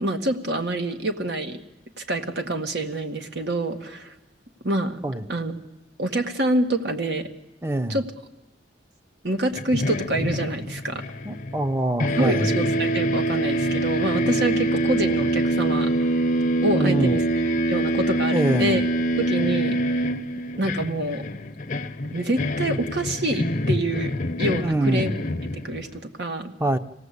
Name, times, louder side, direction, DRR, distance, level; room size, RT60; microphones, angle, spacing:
voice 1, 0.0-1.6 2.0-4.1 4.6-5.0 5.3-5.5 6.0-7.3 7.9-8.0 9.2-11.0 12.2-15.9 16.6-17.2 17.7-18.9 19.2-19.8 20.6-21.2 22.1-24.1 24.4-25.1 25.5-26.5, right 1 dB, 70° right, 5 dB, 1.8 m, -26 dB
voice 2, 7.6-8.0 11.2-12.5 16.7-17.1 18.3-18.8 24.6-25.1 26.6-26.8, right 1 dB, 15° right, 9 dB, 0.8 m, -24 dB
sound 1, 9.5-11.7 12.0-26.0, right 1 dB, 50° left, 0.8 m, -25 dB
26.0 x 17.5 x 8.3 m, 1.0 s
head